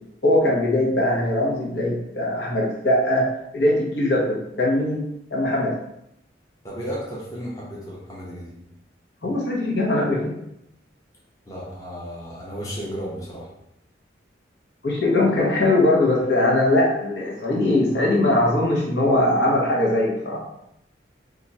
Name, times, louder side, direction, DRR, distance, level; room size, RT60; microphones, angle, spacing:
voice 1, 0.2-3.3 3.5-5.0 5.3-5.7 9.2-10.3 14.8-20.4, left 1 dB, 70° left, -3 dB, 0.9 m, -21 dB
voice 2, 6.6-8.6 11.5-13.5, equal, 20° left, -6 dB, 0.8 m, -34 dB
2.9 x 2.4 x 4.1 m, 0.81 s
head